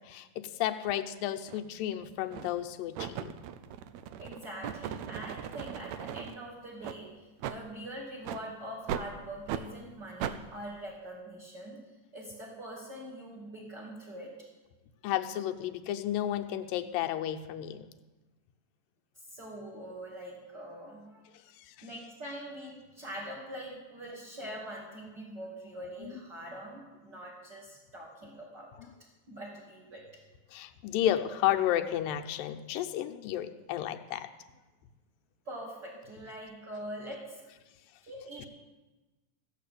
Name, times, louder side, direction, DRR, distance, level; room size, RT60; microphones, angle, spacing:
voice 1, 0.0-3.3 15.0-17.8 21.7-21.8 26.0-26.1 30.5-34.3, left 12 dB, 90° left, 6 dB, 2.5 m, -32 dB
sound 1, 1.5-1.6 2.3-2.6 3.0-6.4 6.8-7.0 7.4-7.6 8.2-8.4 8.9-9.1 9.5-9.7 10.2-10.4, right 9 dB, 90° right, 1.5 m, -38 dB
voice 2, 4.2-11.8 12.1-14.3 19.1-21.3 21.8-28.7 29.3-30.0 35.4-37.4 38.0-38.5, right 1 dB, 35° right, -4 dB, 2.6 m, -43 dB
15.5 x 7.3 x 8.4 m, 1.2 s
omnidirectional pair, 3.9 m